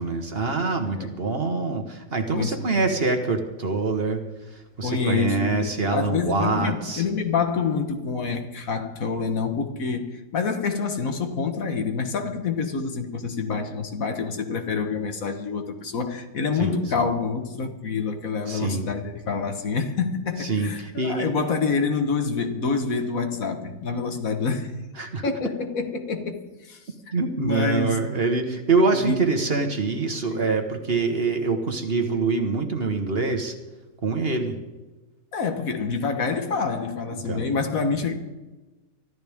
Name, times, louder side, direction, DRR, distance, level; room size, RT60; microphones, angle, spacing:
voice 1, 0.0-4.2 4.5-7.0 16.6-16.8 18.5-18.9 20.4-21.4 25.0-25.2 27.1-33.5 34.0-34.5 37.3-37.5, right 3 dB, 40° right, 5 dB, 1.5 m, -25 dB
voice 2, 2.3-2.6 4.8-24.7 25.2-26.8 27.4-28.0 28.9-29.2 30.3-30.5 35.3-38.1, left 5 dB, 65° left, 6 dB, 1.6 m, -27 dB
24.0 x 13.5 x 3.6 m, 1.2 s
omnidirectional pair, 1.6 m